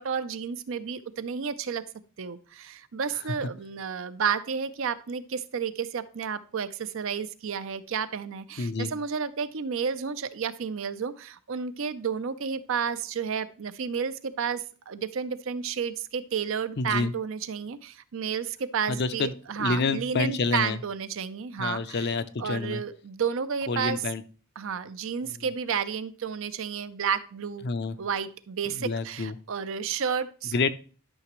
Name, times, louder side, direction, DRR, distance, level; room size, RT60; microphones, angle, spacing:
voice 1, 0.0-1.8 2.2-22.1 22.4-24.0 24.6-27.7 28.0-30.5, right 6 dB, 60° right, 13 dB, 0.5 m, -31 dB
voice 2, 8.6-8.9 16.8-17.1 18.9-19.3 19.6-20.8 21.6-22.8 23.7-24.2 25.2-25.3 27.6-28.0 28.7-29.3 30.5-30.7, left 4 dB, 50° left, 12 dB, 0.5 m, -28 dB
11.5 x 5.9 x 3.0 m, 0.39 s
head